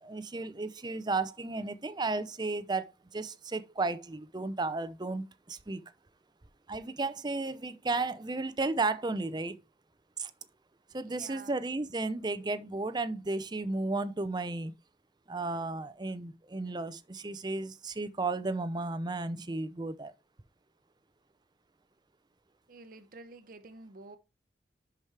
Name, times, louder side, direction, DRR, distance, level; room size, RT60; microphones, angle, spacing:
voice 1, 0.0-5.8 6.7-9.6 10.2-10.3 10.9-14.7 15.3-20.1, right 3 dB, 25° right, 0.6 m, -34 dB
voice 2, 11.0-11.6 22.7-24.2, right 3 dB, 50° right, 0.8 m, -49 dB
11.0 x 4.9 x 3.4 m
head